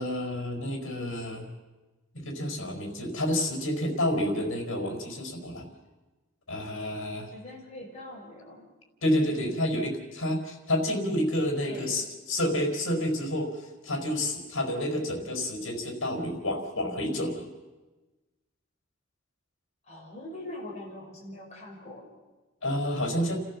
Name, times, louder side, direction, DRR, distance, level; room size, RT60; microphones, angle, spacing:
voice 1, 0.0-1.5 2.1-5.7 6.5-7.3 9.0-13.5 13.8-17.5 22.6-23.4, left 1 dB, 70° left, 3 dB, 4.7 m, -29 dB
voice 2, 7.3-8.7 11.6-12.1 19.9-22.1, left 1 dB, 30° left, -2 dB, 6.0 m, -43 dB
30.0 x 14.5 x 7.3 m, 1.2 s
head